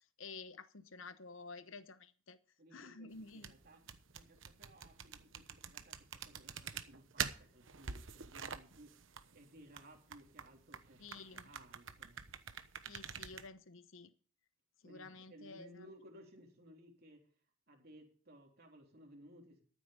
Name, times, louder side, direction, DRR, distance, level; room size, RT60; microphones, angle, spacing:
voice 1, 0.2-2.4 2.7-3.5 11.0-11.5 12.9-14.1 14.8-15.9, left 4 dB, 70° left, 0.9 m, -51 dB
voice 2, 2.6-12.2 14.8-17.3 17.7-19.6, equal, 50° right, 3.4 m, -60 dB
sound 1, 3.2-13.5, right 7 dB, 70° right, 1.1 m, -46 dB
14.0 x 8.4 x 5.2 m
head